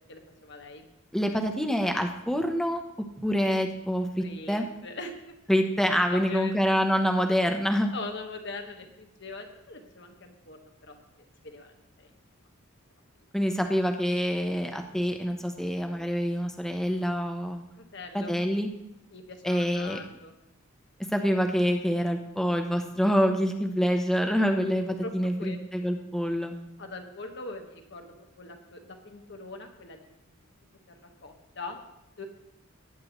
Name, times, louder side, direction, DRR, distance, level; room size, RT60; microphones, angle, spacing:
voice 1, 0.1-0.9 4.2-5.3 6.1-6.5 6.9-7.1 7.9-11.0 11.4-12.1 17.8-18.4 19.1-20.3 25.0-25.1 25.4-25.6 26.8-30.0 30.9-31.0 31.2-31.8 32.2-32.3, left 3 dB, 55° left, 4 dB, 1.4 m, -41 dB
voice 2, 1.1-2.8 3.2-4.7 5.5-7.9 13.3-17.6 18.1-18.7 19.4-20.0 21.1-26.5, equal, ahead, 3 dB, 0.8 m, -26 dB
18.0 x 9.4 x 3.1 m, 0.86 s
head